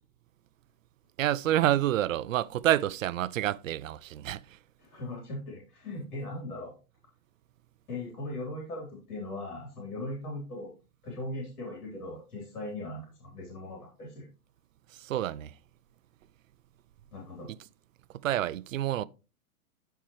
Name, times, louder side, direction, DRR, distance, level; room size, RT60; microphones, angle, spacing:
voice 1, 1.2-4.6 14.9-15.5 18.1-19.0, right 13 dB, 60° right, 0.5 m, -28 dB
voice 2, 4.8-6.7 7.9-10.7 11.0-14.3 17.1-17.5, left 1 dB, 75° left, 3.7 m, -39 dB
13.5 x 4.5 x 3.1 m
hypercardioid pair, 150°, 46 cm